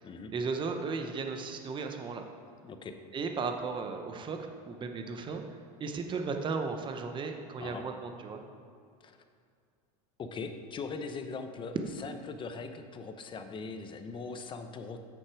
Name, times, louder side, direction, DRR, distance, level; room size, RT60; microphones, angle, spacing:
voice 1, 0.3-2.2 3.1-4.4 4.6-5.4 5.8-8.4, right 4 dB, 25° right, 5 dB, 0.8 m, -35 dB
voice 2, 2.6-3.0 7.6-7.8 9.0-9.2 10.2-15.0, left 4 dB, 25° left, 8 dB, 0.8 m, -40 dB
8.7 x 6.5 x 4.8 m, 2.3 s
supercardioid pair, 115°, 19 cm